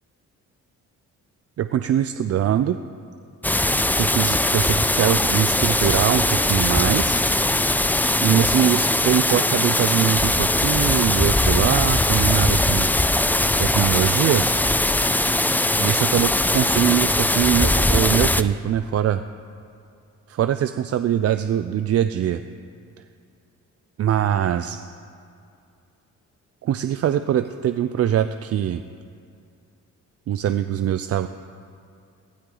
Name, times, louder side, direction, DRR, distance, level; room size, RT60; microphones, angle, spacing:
voice 1, 1.6-2.8 4.0-7.2 8.2-12.9 13.6-14.5 15.7-19.2 20.3-22.4 24.0-24.8 26.6-28.8 30.3-31.3, right 10 dB, 50° right, 10 dB, 0.5 m, -22 dB
sound 1, 3.4-18.4, left 1 dB, 5° left, 0.5 m, -20 dB
19.0 x 12.5 x 3.9 m, 2.5 s
cardioid pair, 90°, 30 cm